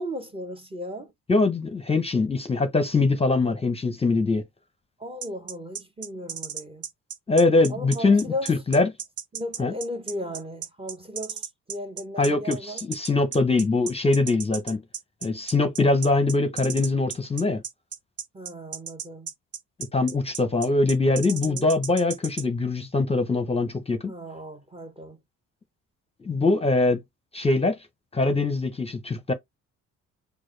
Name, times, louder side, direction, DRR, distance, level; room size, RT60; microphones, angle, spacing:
voice 1, 0.0-1.1 5.0-6.9 7.7-8.5 9.3-11.4 11.7-12.8 18.3-19.3 21.3-21.7 24.1-25.2, equal, 20° right, 1.0 m, -36 dB
voice 2, 1.3-4.4 7.3-8.9 9.6-9.7 12.2-14.8 15.2-17.6 19.9-24.1 26.2-27.0 27.3-27.8 28.1-29.3, left 3 dB, 20° left, 0.8 m, -23 dB
sound 1, 5.2-22.4, right 8 dB, 55° right, 0.7 m, -35 dB
4.6 x 2.3 x 3.2 m
cardioid pair, 90°, 30 cm